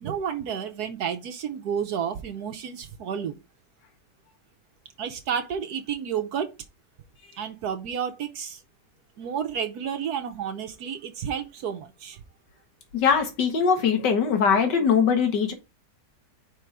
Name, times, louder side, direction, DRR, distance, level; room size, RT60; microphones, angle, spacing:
voice 1, 0.0-3.4 5.0-6.5 7.4-8.6 9.2-12.2, right 8 dB, 70° right, 1.3 m, -31 dB
voice 2, 12.9-15.5, left 6 dB, 85° left, 1.8 m, -21 dB
5.3 x 4.5 x 4.9 m
omnidirectional pair, 1.8 m